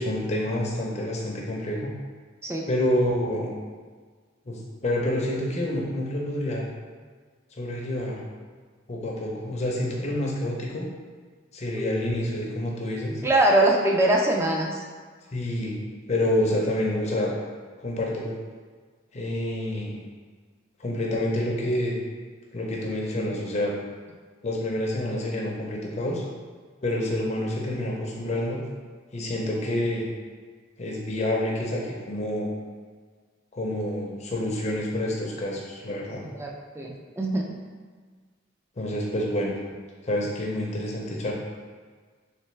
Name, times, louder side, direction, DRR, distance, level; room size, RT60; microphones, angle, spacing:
voice 1, 0.0-1.9 2.7-3.5 4.5-6.7 7.5-8.2 8.9-10.8 11.5-13.2 15.3-15.8 16.1-17.4 17.8-18.3 19.1-20.0 20.8-22.0 22.5-23.7 24.4-26.2 26.8-28.6 29.1-30.0 30.8-32.5 33.5-36.2 38.8-39.5 40.0-41.3, left 1 dB, 35° left, -2 dB, 0.6 m, -28 dB
voice 2, 13.2-14.8 36.4-36.5 36.8-37.4, right 1 dB, 15° right, -1 dB, 0.4 m, -22 dB
3.3 x 3.2 x 3.2 m, 1.5 s
head